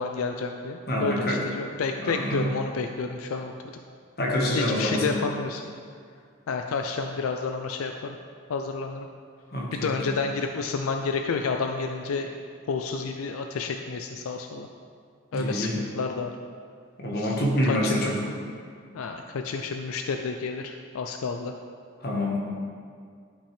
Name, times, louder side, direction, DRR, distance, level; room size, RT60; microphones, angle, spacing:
voice 1, 0.0-3.5 4.6-5.7 6.5-8.1 8.5-9.1 9.7-12.3 12.7-14.7 15.3-16.3 17.2-17.4 17.6-18.1 18.9-21.5, left 4 dB, 90° left, 5 dB, 0.4 m, -30 dB
voice 2, 0.9-1.4 2.0-2.5 4.2-5.0 9.5-9.9 15.3-15.8 17.0-18.2 22.0-22.4, equal, 50° left, -2 dB, 1.4 m, -26 dB
11.0 x 5.9 x 3.3 m, 2.2 s
head